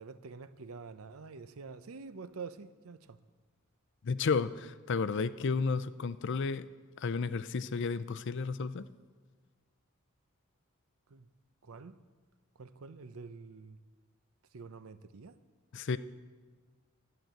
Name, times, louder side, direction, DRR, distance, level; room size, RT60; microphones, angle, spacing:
voice 1, 0.0-3.2 11.1-11.3 11.6-12.0 12.6-13.8 14.5-15.4, right 4 dB, 80° right, 0.6 m, -47 dB
voice 2, 4.0-6.7 7.0-8.9 15.7-16.0, left 4 dB, 60° left, 0.5 m, -32 dB
11.5 x 8.9 x 7.9 m
head